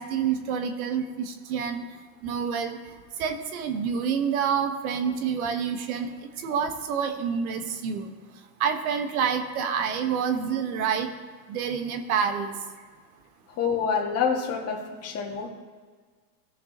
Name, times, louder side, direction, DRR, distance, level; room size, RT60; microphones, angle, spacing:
voice 1, 0.0-1.8 2.2-2.8 3.2-8.1 8.6-11.1 11.5-12.5, right 7 dB, 60° right, 6 dB, 1.6 m, -28 dB
voice 2, 13.5-15.5, left 6 dB, 30° left, -1 dB, 1.9 m, -27 dB
17.5 x 6.6 x 3.1 m, 1.5 s
hypercardioid pair, 115°, 48 cm